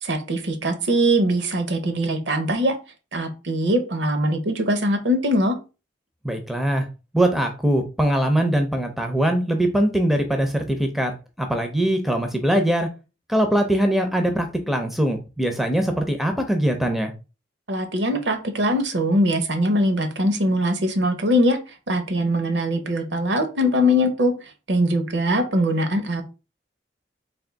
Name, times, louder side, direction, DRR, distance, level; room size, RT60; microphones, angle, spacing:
voice 1, 0.0-2.8 3.1-5.6 17.7-21.6 21.9-24.3 24.7-26.2, equal, 65° right, 7 dB, 0.7 m, -22 dB
voice 2, 6.2-6.9 7.1-12.9 13.3-17.1, right 1 dB, ahead, 5 dB, 0.5 m, -22 dB
3.5 x 2.7 x 3.8 m, 0.31 s
head